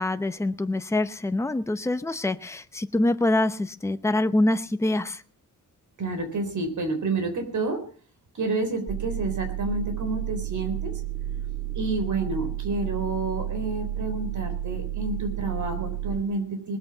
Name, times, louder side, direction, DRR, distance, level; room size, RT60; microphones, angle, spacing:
voice 1, 0.0-5.2, left 2 dB, 10° left, 9 dB, 0.8 m, -25 dB
voice 2, 6.0-7.8 8.3-10.9 11.7-16.8, right 3 dB, 60° right, 6 dB, 4.0 m, -29 dB
sound 1, 8.9-16.2, right 12 dB, 35° right, 2.1 m, -31 dB
19.5 x 8.5 x 7.2 m, 0.43 s
wide cardioid pair, 140°, 34 cm